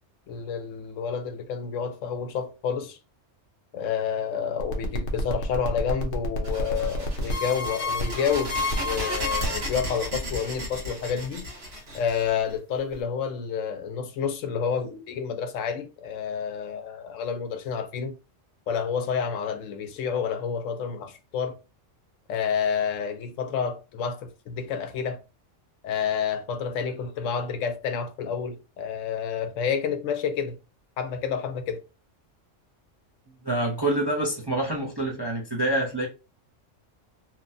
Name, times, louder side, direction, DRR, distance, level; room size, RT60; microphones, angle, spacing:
voice 1, 0.3-3.0 3.7-11.5 11.9-18.2 18.7-21.6 22.3-25.2 25.8-30.6 31.0-31.8, left 7 dB, 80° left, 0.9 m, -29 dB
sound 1, 4.6-9.7, left 2 dB, 55° left, 0.7 m, -30 dB
sound 2, 6.4-12.9, equal, 60° right, 1.2 m, -34 dB
voice 2, 33.4-36.1, right 1 dB, 30° right, 0.4 m, -26 dB
2.9 x 2.1 x 2.5 m
omnidirectional pair, 1.3 m